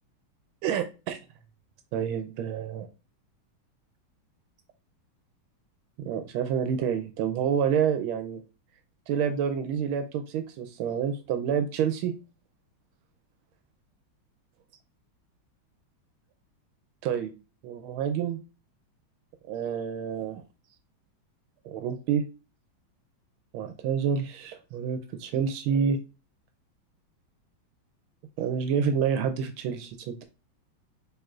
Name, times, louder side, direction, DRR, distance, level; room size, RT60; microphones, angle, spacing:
voice 1, 0.6-1.2 1.9-2.9 6.0-8.4 9.1-12.1 17.0-17.3 17.6-18.4 19.5-20.4 21.6-22.2 23.5-26.0 28.4-30.2, right 7 dB, 85° right, 7 dB, 1.4 m, -28 dB
5.5 x 3.7 x 2.4 m, 0.31 s
omnidirectional pair, 2.2 m